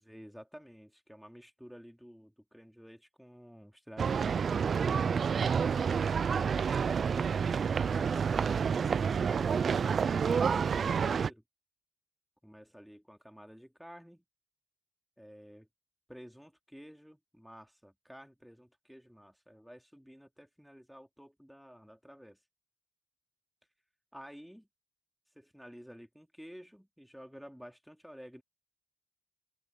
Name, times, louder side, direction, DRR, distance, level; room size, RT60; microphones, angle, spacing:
voice 1, 0.0-5.7 12.4-14.2 15.2-15.7 16.1-22.4 24.1-24.7 25.3-28.4, equal, ahead, 3.0 m, -52 dB
sound 1, 4.0-11.3, right 6 dB, 45° right, 0.4 m, -29 dB
open air
cardioid pair, 90°, 0 cm